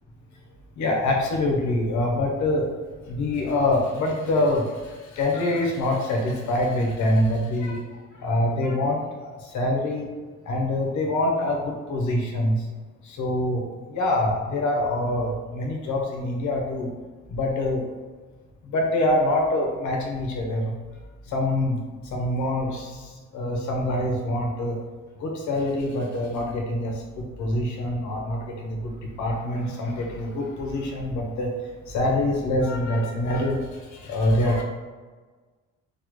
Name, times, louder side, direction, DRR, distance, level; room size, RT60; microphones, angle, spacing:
voice 1, 0.8-2.7 3.1-4.6 5.2-7.8 8.2-10.1 10.5-12.5 13.2-13.6 13.9-16.9 17.3-17.8 18.7-20.7 21.3-21.8 22.1-23.0 23.3-24.8 25.2-28.9 29.2-31.5 31.9-33.6 34.0-34.6, left 1 dB, 75° left, 1 dB, 0.8 m, -25 dB
3.2 x 2.1 x 3.0 m, 1.4 s
cardioid pair, 90°, 30 cm